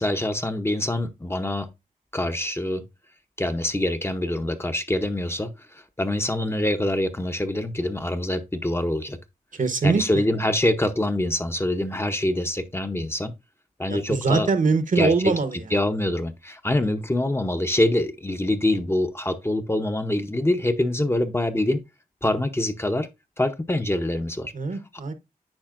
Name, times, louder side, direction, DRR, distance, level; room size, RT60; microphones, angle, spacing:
voice 1, 0.0-1.7 2.1-2.8 3.4-9.2 9.8-13.3 13.8-14.5 15.0-15.3 15.7-21.8 22.2-23.1 23.4-24.5, left 1 dB, 15° left, 0.7 m, -25 dB
voice 2, 9.5-10.2 13.9-15.6 24.5-25.1, right 4 dB, 60° right, 1.0 m, -23 dB
8.8 x 4.9 x 2.4 m
wide cardioid pair, 70°, 15 cm